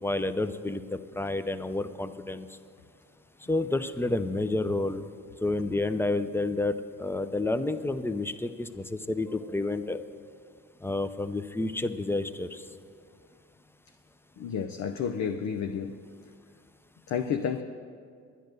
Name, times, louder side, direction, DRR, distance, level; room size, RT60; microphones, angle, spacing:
voice 1, 0.0-2.5 3.5-5.0 5.4-10.0 10.8-12.6, left 2 dB, 5° left, 11 dB, 0.6 m, -30 dB
voice 2, 14.4-16.0 17.1-17.6, left 7 dB, 60° left, 7 dB, 0.7 m, -31 dB
10.5 x 10.0 x 6.4 m, 2.3 s
supercardioid pair, 65°, 32 cm